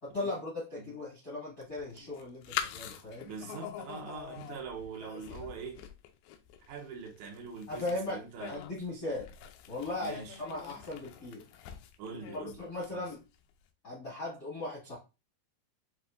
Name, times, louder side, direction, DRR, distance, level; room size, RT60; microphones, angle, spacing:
voice 1, 0.0-3.3 7.7-8.2 8.5-9.3 9.7-11.4 12.3-13.2 13.8-15.0, left 2 dB, 65° left, 0.9 m, -38 dB
sound 1, 1.6-13.4, left 10 dB, 85° left, 2.2 m, -44 dB
voice 2, 3.2-5.8 6.7-8.6 10.0-10.4 12.0-12.6 12.9-13.0, right 5 dB, 90° right, 1.6 m, -43 dB
7.5 x 2.5 x 2.5 m
omnidirectional pair, 4.9 m